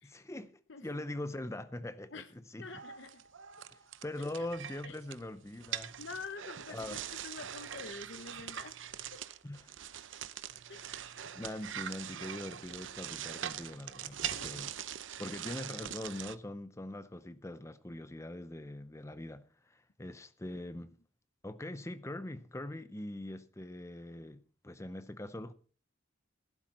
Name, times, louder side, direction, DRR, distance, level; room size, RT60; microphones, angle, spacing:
voice 1, 0.0-2.8 3.7-5.9 6.7-7.0 9.4-9.7 10.2-10.3 10.9-11.0 11.3-14.7 15.2-20.9 21.4-25.5, left 1 dB, 15° left, 0.6 m, -42 dB
voice 2, 0.7-1.0 2.1-2.3 2.6-3.2 4.8-5.0 5.8-9.2 10.7-11.0 14.3-14.7, left 4 dB, 65° left, 1.0 m, -47 dB
sound 1, 2.7-16.4, right 10 dB, 70° right, 0.7 m, -43 dB
15.5 x 12.0 x 4.3 m
head